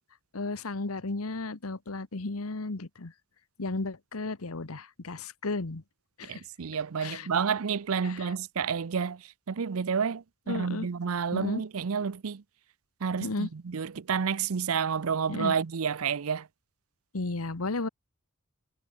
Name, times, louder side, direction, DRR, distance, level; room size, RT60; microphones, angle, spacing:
voice 1, 0.3-3.1 3.6-5.8 6.2-6.4 7.0-7.3 8.0-8.3 10.5-10.9 11.3-11.6 13.2-13.5 15.3-15.5 17.1-17.9, left 3 dB, 85° left, 1.3 m, -34 dB
voice 2, 6.3-12.4 13.0-16.5, right 6 dB, 75° right, 0.6 m, -30 dB
head